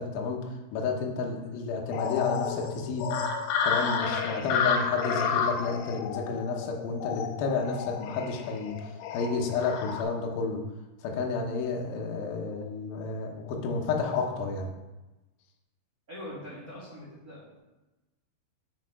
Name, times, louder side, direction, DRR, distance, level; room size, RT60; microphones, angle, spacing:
voice 1, 0.0-3.1 3.6-10.6 11.0-14.7, left 4 dB, 70° left, 1 dB, 2.3 m, -31 dB
sound 1, 1.9-10.0, left 6 dB, 90° left, 3.1 m, -31 dB
voice 2, 16.1-17.6, left 1 dB, 40° right, -9 dB, 1.2 m, -42 dB
6.5 x 6.3 x 4.6 m, 1.1 s
omnidirectional pair, 5.5 m